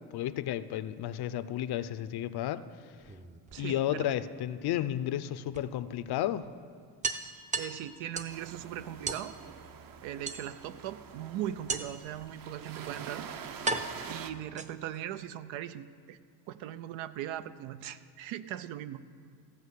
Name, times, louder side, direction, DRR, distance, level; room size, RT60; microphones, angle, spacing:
voice 1, 0.0-2.6 3.6-6.5, left 12 dB, 55° left, 13 dB, 0.6 m, -32 dB
sound 1, 3.0-4.1 5.5-5.6 6.0-6.1 6.4-6.5 7.0-8.4 9.1-9.3 10.3-10.8 11.7-12.1 12.9-13.0 13.7-15.0, right 3 dB, 15° right, 0.5 m, -36 dB
voice 2, 3.5-4.1 7.5-9.4 10.0-13.3 14.1-16.2 16.5-19.0, right 11 dB, 85° right, 13 dB, 0.7 m, -39 dB
sound 2, 8.3-14.3, right 7 dB, 50° right, 0.8 m, -45 dB
15.0 x 5.2 x 8.2 m, 2.3 s
cardioid pair, 110°, 45 cm